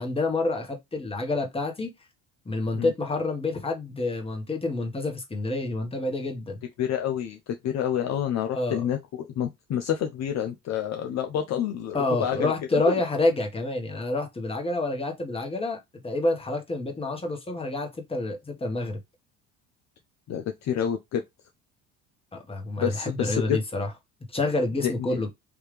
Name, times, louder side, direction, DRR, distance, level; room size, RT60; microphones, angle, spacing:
voice 1, 0.0-1.9 2.4-6.6 8.5-8.8 11.9-19.0 22.3-23.9 24.3-25.3, left 2 dB, 15° left, 1.4 m, -28 dB
voice 2, 6.8-7.4 7.6-13.0 20.3-21.2 22.8-23.6 24.8-25.2, left 9 dB, 50° left, 0.7 m, -28 dB
3.5 x 2.8 x 3.3 m
supercardioid pair, 80°, 35 cm